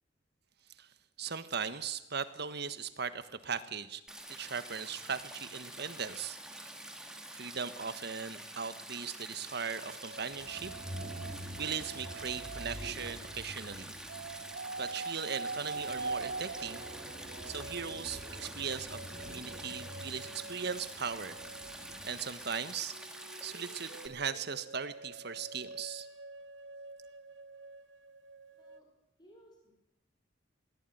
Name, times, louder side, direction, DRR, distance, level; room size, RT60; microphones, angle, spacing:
voice 1, 1.2-4.0 4.3-6.8 7.3-10.7 11.6-13.9 14.8-16.9 17.5-21.4 21.7-22.9 23.4-26.1, right 6 dB, 60° right, 12 dB, 1.5 m, -39 dB
Stream, 4.1-24.1, right 1 dB, 5° right, 2.5 m, -47 dB
sound 1, 9.8-13.7 14.1-22.2 22.9-28.8, right 3 dB, 80° right, 1.3 m, -45 dB
sound 2, 10.3-22.3, equal, 25° right, 3.3 m, -48 dB
voice 2, 28.5-28.9 29.2-29.7, equal, 25° left, 0 dB, 5.5 m, -60 dB
21.5 x 18.5 x 9.4 m, 0.88 s
head